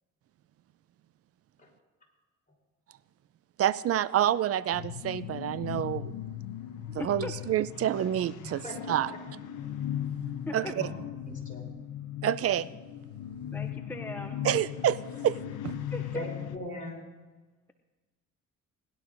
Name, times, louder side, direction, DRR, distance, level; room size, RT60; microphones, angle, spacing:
voice 1, 3.6-6.1 6.9-9.1 10.5-10.7 12.2-12.7 14.4-15.4 15.6-15.7, right 11 dB, 50° right, 17 dB, 0.4 m, -28 dB
sound 1, 4.7-16.6, left 10 dB, 85° left, 0.6 m, -38 dB
voice 2, 7.0-7.3 10.5-10.7 13.5-14.4 15.9-16.3, left 1 dB, 5° left, 5 dB, 0.6 m, -38 dB
voice 3, 8.4-9.0 10.6-10.9 11.2-11.7 16.1-17.0, left 1 dB, 25° left, -2 dB, 4.0 m, -40 dB
19.0 x 11.5 x 2.6 m, 1.3 s
cardioid pair, 90°, 30 cm